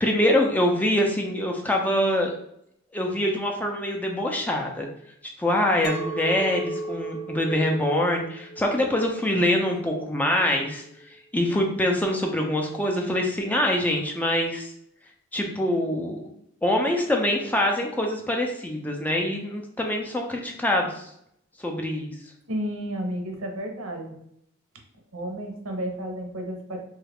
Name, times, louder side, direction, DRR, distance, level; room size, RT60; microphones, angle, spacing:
voice 1, 0.0-2.3 2.9-4.9 5.2-10.8 11.3-14.7 15.3-16.2 16.6-21.1 21.6-22.1, left 1 dB, 10° left, 1 dB, 0.4 m, -24 dB
Chink clink, 5.8-11.0, right 2 dB, 85° left, 0.4 m, -36 dB
voice 2, 22.5-24.1 25.1-26.8, equal, 85° right, 2 dB, 0.7 m, -32 dB
3.1 x 2.4 x 3.3 m, 0.73 s
head